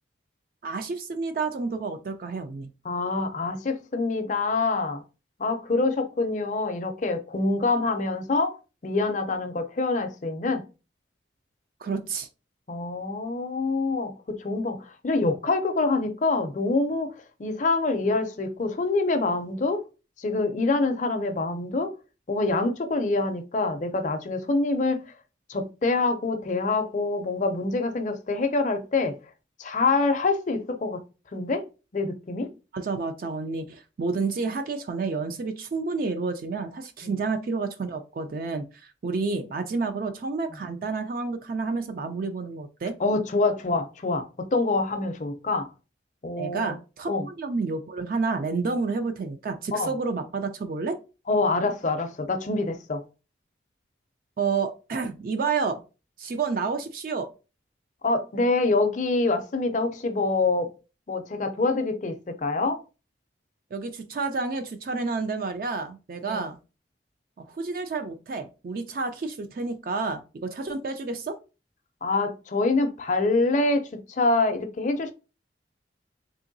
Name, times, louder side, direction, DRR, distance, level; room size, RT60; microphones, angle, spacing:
voice 1, 0.6-2.7 11.8-12.3 32.7-43.0 46.3-51.0 54.4-55.8 56.2-57.3 63.7-66.6 67.5-71.4, right 4 dB, 50° right, 0.3 m, -30 dB
voice 2, 2.8-5.0 5.4-8.5 8.8-10.6 12.7-17.1 17.4-19.8 20.2-21.9 22.3-25.0 25.5-29.2 29.6-31.0 31.3-31.6 31.9-32.5 37.0-37.1 43.0-45.7 46.2-46.8 47.1-47.3 49.7-49.9 51.3-53.0 58.0-60.7 61.1-62.8 66.3-66.4 72.0-75.1, left 3 dB, 40° left, 0.4 m, -25 dB
3.7 x 2.9 x 2.6 m
head